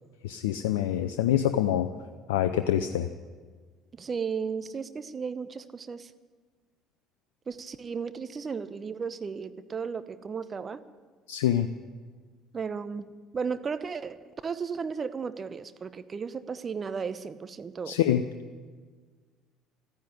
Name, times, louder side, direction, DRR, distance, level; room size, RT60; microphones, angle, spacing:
voice 1, 0.2-1.9 2.3-3.1 11.3-11.7 17.9-18.2, left 11 dB, 80° left, 9 dB, 0.5 m, -25 dB
voice 2, 3.9-6.1 7.5-10.8 12.5-14.2 14.4-18.0, right 5 dB, 35° right, 13 dB, 0.9 m, -34 dB
14.0 x 10.0 x 9.8 m, 1.5 s
hypercardioid pair, 60°, 0 cm